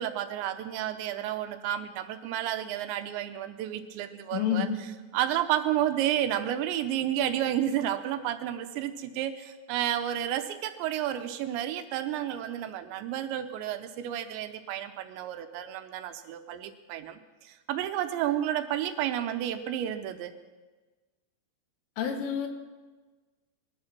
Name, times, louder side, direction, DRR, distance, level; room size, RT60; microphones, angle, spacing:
voice 1, 0.0-4.7 5.1-20.3, right 11 dB, 80° right, 9 dB, 2.9 m, -31 dB
voice 2, 4.3-4.8 22.0-22.5, left 8 dB, 90° left, 5 dB, 3.9 m, -28 dB
20.0 x 12.0 x 5.9 m, 1.3 s
omnidirectional pair, 5.5 m